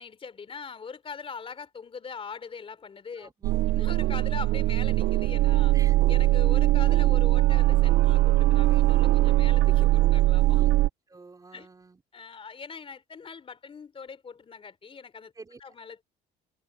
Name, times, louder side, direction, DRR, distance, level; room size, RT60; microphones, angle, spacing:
voice 1, 0.0-3.3 3.7-5.7 6.1-9.9 10.1-10.7 11.5-11.7 12.1-15.3 15.6-16.0, left 5 dB, 35° left, 3.4 m, -41 dB
voice 2, 3.1-3.8 5.7-5.9 9.0-9.3 10.5-10.7 11.1-12.0 15.3-15.8, right 3 dB, 20° right, 4.6 m, -49 dB
sound 1, 3.4-10.9, right 16 dB, 75° right, 0.5 m, -21 dB
cardioid pair, 110°, 17 cm